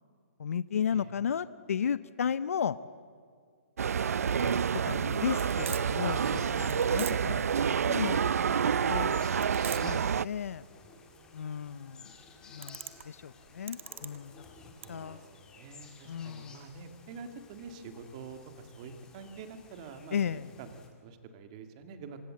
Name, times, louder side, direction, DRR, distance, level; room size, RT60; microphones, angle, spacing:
voice 1, 0.4-2.8 4.4-9.4 9.8-10.6 11.3-12.1 12.5-12.8 13.0-14.4 14.9-15.2 16.0-16.6 20.1-20.5, left 7 dB, 70° left, 16 dB, 0.6 m, -34 dB
sound 1, 3.8-10.3, right 7 dB, 80° right, 0.5 m, -28 dB
sound 2, 3.9-14.9, right 8 dB, 55° right, 1.6 m, -45 dB
sound 3, 5.1-20.9, left 4 dB, 10° left, 2.0 m, -55 dB
voice 2, 14.8-20.7 21.0-22.2, right 5 dB, 25° right, 8 dB, 1.8 m, -47 dB
25.5 x 20.0 x 7.6 m, 2.2 s
hypercardioid pair, 170°, 8 cm